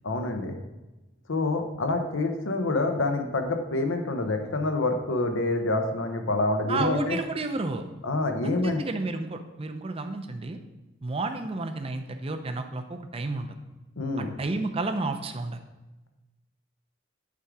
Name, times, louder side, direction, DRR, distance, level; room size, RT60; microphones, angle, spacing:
voice 1, 0.0-0.6 1.3-7.2 8.0-8.8 14.0-14.3, left 2 dB, 90° left, 5 dB, 0.8 m, -27 dB
voice 2, 6.7-7.8 8.4-10.6 11.0-13.6 14.2-15.6, right 3 dB, 30° right, 7 dB, 0.5 m, -31 dB
8.3 x 3.7 x 4.7 m, 1.1 s
head